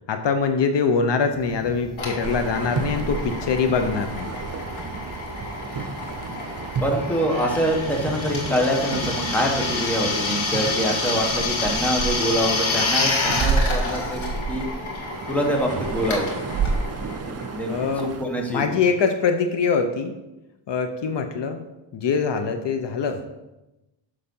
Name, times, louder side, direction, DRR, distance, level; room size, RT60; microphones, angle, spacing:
voice 1, 0.1-4.3 17.7-18.1 18.5-20.1 20.7-21.7 21.9-23.2, left 5 dB, 65° left, 7 dB, 0.8 m, -23 dB
sound 1, 1.3-18.7, right 5 dB, 55° right, 0.9 m, -37 dB
Drill, 2.0-18.3, left 3 dB, 85° left, 2.0 m, -29 dB
sound 2, 2.2-18.2, right 5 dB, 35° right, 0.5 m, -32 dB
voice 2, 6.8-14.7 15.3-16.3 17.3-18.8, equal, 5° left, 0 dB, 1.5 m, -25 dB
6.8 x 6.4 x 5.5 m, 0.99 s
wide cardioid pair, 135°, 46 cm